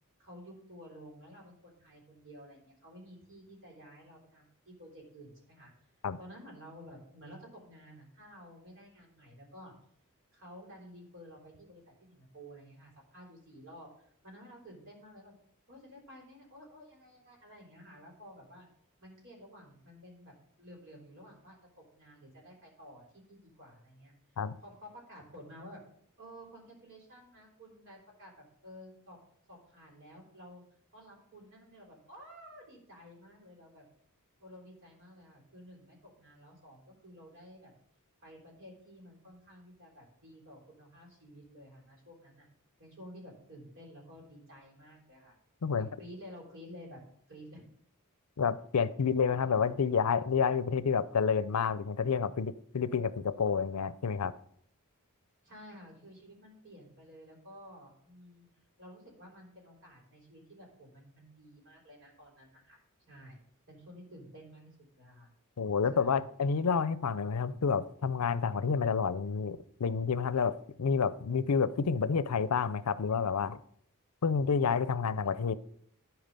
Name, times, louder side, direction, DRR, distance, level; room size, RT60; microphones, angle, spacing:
voice 1, 0.2-5.7 6.2-9.7 10.3-15.3 15.7-18.7 19.0-20.3 20.6-24.1 24.6-25.8 26.2-29.2 29.5-30.6 30.9-33.9 34.4-37.7 38.2-42.5 42.8-45.3 45.8-47.0 47.3-47.6 55.4-58.5 58.8-63.4 63.7-65.3 65.9-66.2, equal, 55° right, -1 dB, 3.6 m, -52 dB
voice 2, 48.4-54.3 65.6-73.6 74.2-75.5, left 6 dB, 80° left, 16 dB, 0.5 m, -29 dB
12.5 x 4.7 x 5.3 m, 0.64 s
head